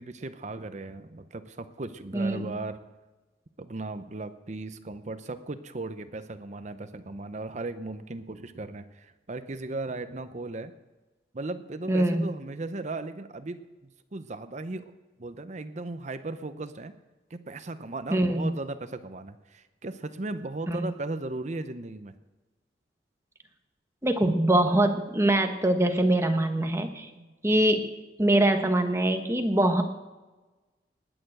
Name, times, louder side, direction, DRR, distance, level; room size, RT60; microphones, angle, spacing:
voice 1, 0.0-2.8 3.6-10.7 11.3-13.6 14.1-14.8 15.2-16.9 17.3-22.1 27.1-27.3, right 2 dB, 40° right, 11 dB, 0.7 m, -37 dB
voice 2, 2.1-2.5 11.9-12.3 18.1-18.5 20.7-20.8 24.0-27.1 27.4-27.9 28.2-29.8, right 1 dB, 15° right, 5 dB, 1.2 m, -23 dB
19.5 x 6.8 x 7.8 m, 1.2 s
head